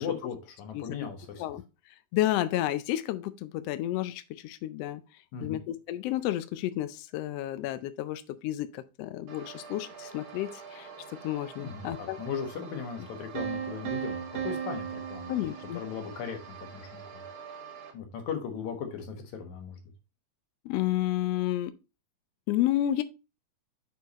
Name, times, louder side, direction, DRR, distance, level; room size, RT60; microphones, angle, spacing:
voice 1, 0.0-1.5 5.3-5.6 11.6-15.3 15.7-17.2 17.9-19.8, left 6 dB, 70° left, 2.6 m, -37 dB
voice 2, 2.1-5.0 5.4-10.9 11.2-12.2 15.3-15.8 20.6-21.7 22.5-23.0, left 14 dB, 85° left, 1.4 m, -31 dB
sound 1, 9.3-17.9, right 6 dB, 80° right, 2.9 m, -47 dB
Piano, 13.4-16.2, right 8 dB, 60° right, 1.8 m, -36 dB
6.5 x 4.6 x 4.1 m
omnidirectional pair, 3.5 m